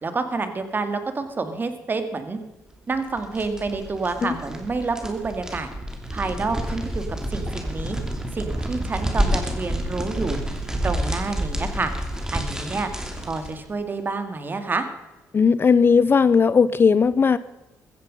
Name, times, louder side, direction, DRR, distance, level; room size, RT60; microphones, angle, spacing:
voice 1, 0.0-2.4 2.9-5.7 6.1-7.0 7.3-8.0 8.3-10.4 10.8-11.9 12.3-12.9 13.2-14.9, right 3 dB, 30° right, 8 dB, 2.2 m, -28 dB
sound 1, 2.9-13.6, right 1 dB, 10° right, 3.0 m, -29 dB
Liquid, 6.6-6.8 7.4-7.7 8.4-8.6 9.3-9.6 10.2-10.5 11.2-11.5 12.2-12.4 13.1-13.5 13.9-14.1, right 4 dB, 55° right, 4.5 m, -47 dB
voice 2, 15.3-17.4, left 5 dB, 35° left, 17 dB, 0.6 m, -17 dB
15.0 x 15.0 x 5.4 m, 1.1 s
cardioid pair, 85°, 6 cm